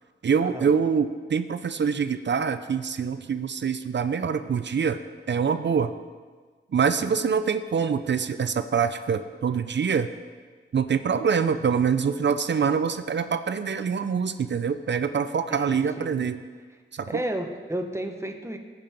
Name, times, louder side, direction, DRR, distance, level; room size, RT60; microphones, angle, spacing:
voice 1, 0.2-5.0 5.3-5.9 6.7-10.1 10.7-16.4 16.9-17.2, right 6 dB, 55° right, 11 dB, 0.5 m, -25 dB
voice 2, 15.5-16.1 17.1-18.6, right 1 dB, 15° right, 4 dB, 1.1 m, -33 dB
15.5 x 5.4 x 4.4 m, 1.5 s
cardioid pair, 50°, 21 cm